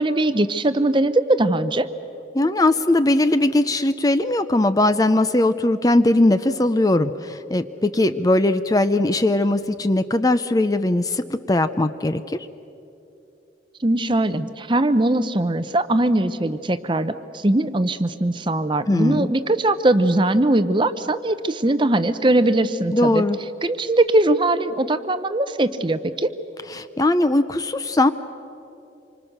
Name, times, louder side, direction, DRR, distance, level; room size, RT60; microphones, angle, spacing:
voice 1, 0.0-1.9 13.8-23.2 23.6-26.3, right 1 dB, 25° right, 12 dB, 0.7 m, -20 dB
voice 2, 2.3-12.4 18.9-19.3 22.9-23.4 26.8-28.1, left 1 dB, 20° left, 11 dB, 0.5 m, -19 dB
27.0 x 25.0 x 6.6 m, 2.9 s
head